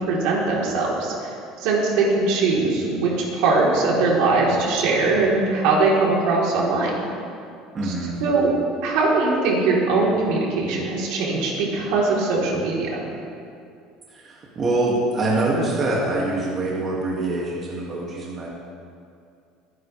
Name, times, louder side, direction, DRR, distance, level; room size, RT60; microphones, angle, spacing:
voice 1, 0.0-1.3 1.6-6.9 7.9-8.0 8.2-8.5 8.8-13.0, right 3 dB, 70° right, -4 dB, 3.7 m, -21 dB
voice 2, 7.7-8.2 14.1-18.5, right 2 dB, 25° right, -5 dB, 2.2 m, -24 dB
25.0 x 10.5 x 3.4 m, 2.4 s
cardioid pair, 160°, 0 cm